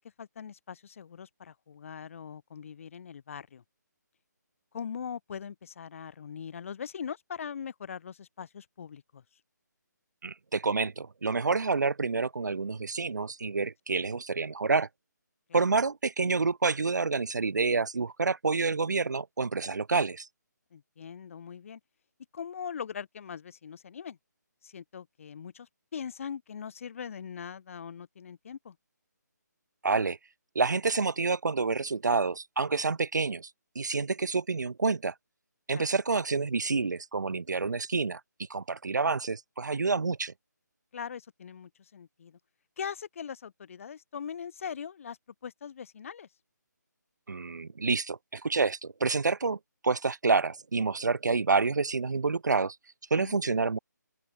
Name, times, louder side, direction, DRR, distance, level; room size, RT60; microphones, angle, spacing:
voice 1, 0.2-3.6 4.7-9.2 13.9-14.0 15.5-15.7 20.7-21.8 22.3-24.2 24.6-28.8 35.7-35.9 40.9-42.4 42.8-45.2 45.4-46.3 53.2-53.4, left 7 dB, 45° left, 5.5 m, -41 dB
voice 2, 10.2-14.9 15.5-20.3 29.8-30.2 30.5-33.5 33.8-35.1 35.7-38.2 38.5-40.3 47.3-52.8 53.1-53.8, right 4 dB, 70° right, 2.4 m, -28 dB
open air
figure-of-eight pair, 155°, 10 cm